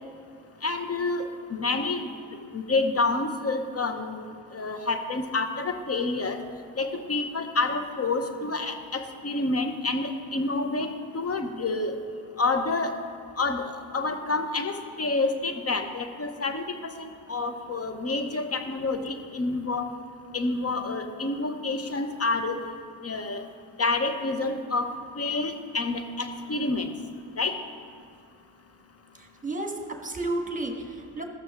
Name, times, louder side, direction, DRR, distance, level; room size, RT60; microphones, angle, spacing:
voice 1, 0.6-1.2 1.5-2.1 2.5-6.4 6.8-10.9 11.1-11.9 12.4-12.9 13.4-19.9 20.3-22.5 23.0-23.4 23.8-24.9 25.2-26.9 27.4-27.5, left 3 dB, 30° left, 6 dB, 1.0 m, -28 dB
voice 2, 29.1-31.2, right 2 dB, 15° right, 3 dB, 1.4 m, -32 dB
14.0 x 6.0 x 3.6 m, 2.2 s
supercardioid pair, 50°, 49 cm